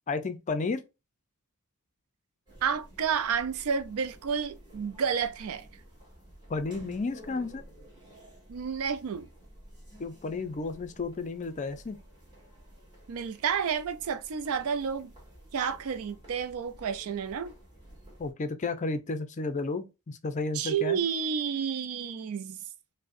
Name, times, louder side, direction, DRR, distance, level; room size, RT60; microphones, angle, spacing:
voice 1, 0.1-0.8 6.5-7.6 10.0-12.0 18.2-21.0, left 3 dB, 35° left, 0.4 m, -32 dB
sound 1, 2.5-18.3, right 1 dB, 20° right, 1.9 m, -52 dB
voice 2, 2.6-5.7 8.5-9.3 13.1-15.1 15.5-17.5 20.5-22.6, right 7 dB, 70° right, 0.4 m, -30 dB
5.1 x 2.1 x 2.4 m
head